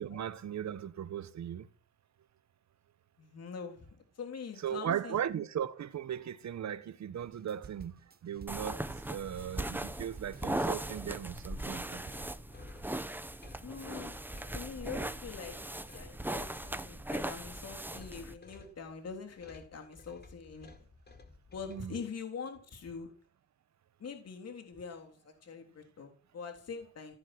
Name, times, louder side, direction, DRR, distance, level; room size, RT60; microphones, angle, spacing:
voice 1, 0.0-1.7 4.6-7.9 8.2-12.0 21.7-22.0, right 9 dB, 70° right, 1.5 m, -37 dB
voice 2, 3.2-3.9 4.2-5.2 13.6-14.2 14.5-15.6 15.9-20.7 21.5-23.1 24.0-27.1, left 5 dB, 60° left, 3.6 m, -44 dB
sound 1, 7.2-12.3, right 6 dB, 35° right, 1.2 m, -51 dB
sound 2, 8.3-21.9, left 3 dB, 35° left, 4.7 m, -56 dB
sound 3, 8.5-18.4, right 1 dB, 5° right, 1.2 m, -39 dB
16.0 x 11.0 x 7.9 m
cardioid pair, 90°, 29 cm